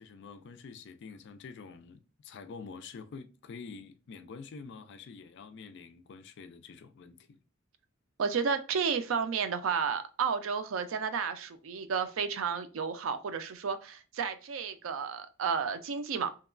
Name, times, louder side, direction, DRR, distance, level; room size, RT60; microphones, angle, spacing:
voice 1, 0.0-7.4, left 5 dB, 60° left, 0.3 m, -47 dB
voice 2, 8.2-16.3, right 6 dB, 75° right, 0.4 m, -32 dB
2.8 x 2.2 x 2.3 m
head